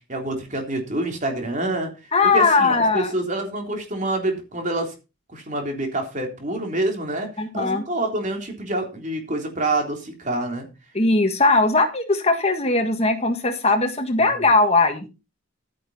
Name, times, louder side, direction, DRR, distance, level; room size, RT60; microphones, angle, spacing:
voice 1, 0.1-1.9 2.3-4.9 5.3-7.3 7.5-10.7, right 2 dB, 35° right, 3 dB, 3.7 m, -27 dB
voice 2, 2.1-3.1 7.4-7.8 10.9-15.1, left 3 dB, 30° left, 6 dB, 1.6 m, -19 dB
11.5 x 10.0 x 4.2 m, 0.29 s
head